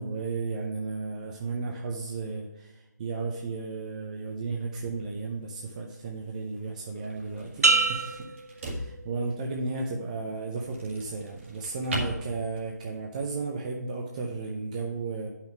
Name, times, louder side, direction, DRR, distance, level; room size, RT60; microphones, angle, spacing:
voice 1, 0.0-15.3, right 3 dB, 25° right, 0 dB, 0.6 m, -34 dB
sound 1, 4.3-13.0, right 1 dB, 45° right, 2.0 m, -41 dB
sound 2, 7.6-9.4 9.9-10.4, right 3 dB, 60° right, 0.8 m, -27 dB
8.8 x 5.7 x 4.5 m, 1.0 s
figure-of-eight pair, 160°, 10 cm